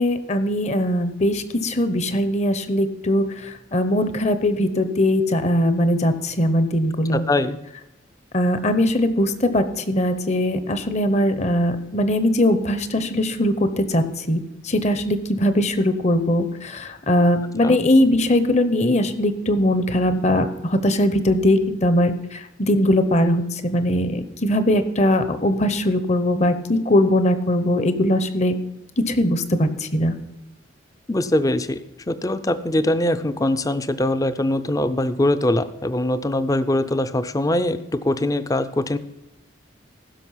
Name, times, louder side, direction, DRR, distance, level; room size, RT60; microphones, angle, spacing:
voice 1, 0.0-7.2 8.3-28.5 29.0-30.1, left 1 dB, 35° left, 11 dB, 0.8 m, -20 dB
voice 2, 7.1-7.6 17.6-17.8 31.1-39.0, left 1 dB, 20° left, 12 dB, 0.5 m, -22 dB
15.0 x 6.3 x 5.6 m, 0.91 s
head